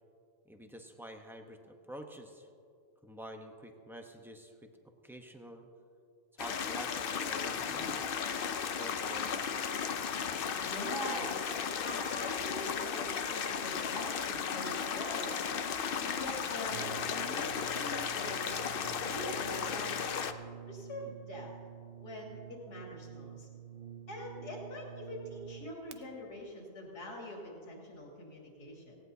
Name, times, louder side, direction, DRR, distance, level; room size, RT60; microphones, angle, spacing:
voice 1, 0.4-2.5 3.0-4.7 5.0-5.7 6.3-8.4 8.7-9.4, right 1 dB, ahead, 3 dB, 0.6 m, -48 dB
sound 1, 6.4-20.3, left 7 dB, 65° left, 0.5 m, -35 dB
voice 2, 10.5-15.3 16.0-18.5 19.0-19.9 20.7-21.5 22.0-23.5 24.1-29.0, left 1 dB, 90° left, -2 dB, 3.2 m, -44 dB
Brass instrument, 16.6-26.0, right 9 dB, 70° right, 0.5 m, -49 dB
18.0 x 17.5 x 2.8 m, 2.4 s
omnidirectional pair, 1.6 m